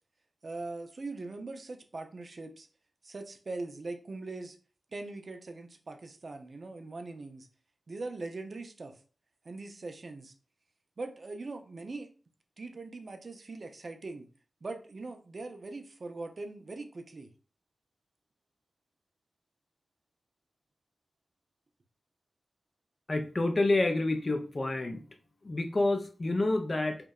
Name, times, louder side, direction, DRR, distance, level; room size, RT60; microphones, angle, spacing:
voice 1, 0.4-2.7 3.0-4.6 4.9-7.5 7.9-9.0 9.4-10.3 11.0-12.1 12.6-14.3 14.6-17.3, right 3 dB, 50° right, 5 dB, 0.3 m, -41 dB
voice 2, 23.1-25.0 25.4-27.0, left 2 dB, 40° left, 5 dB, 0.4 m, -28 dB
2.7 x 2.1 x 2.2 m, 0.38 s
wide cardioid pair, 90°, 0 cm